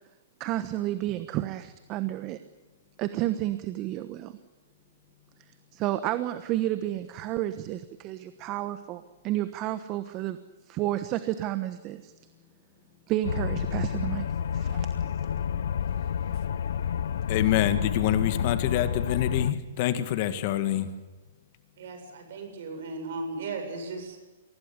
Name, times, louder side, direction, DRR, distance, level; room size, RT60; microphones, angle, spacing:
voice 1, 0.4-2.4 3.0-4.4 5.7-10.4 10.7-12.1 13.1-14.3 14.5-14.9, right 14 dB, 35° right, 12 dB, 1.1 m, -31 dB
sound 1, 13.2-19.5, left 8 dB, 70° left, 0.9 m, -29 dB
voice 2, 17.3-20.9, left 11 dB, 45° left, 11 dB, 1.8 m, -26 dB
voice 3, 21.8-24.2, right 3 dB, 60° right, 6 dB, 7.4 m, -36 dB
23.5 x 17.5 x 9.9 m, 1.2 s
hypercardioid pair, 130°, 0 cm